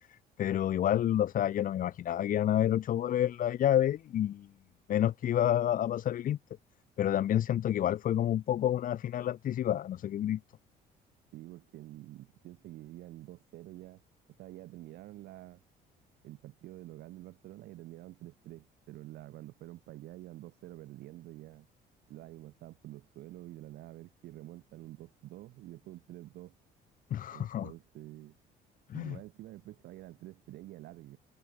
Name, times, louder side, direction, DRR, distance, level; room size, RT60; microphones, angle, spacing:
voice 1, 0.1-4.5 4.9-6.4 7.0-10.4 27.1-27.7 28.9-29.2, left 11 dB, 55° left, 1.2 m, -29 dB
voice 2, 11.3-14.0 14.4-15.6 16.2-21.7 22.1-26.6 27.3-28.4 28.9-31.2, right 16 dB, 75° right, 6.4 m, -48 dB
cardioid pair, 110°, 17 cm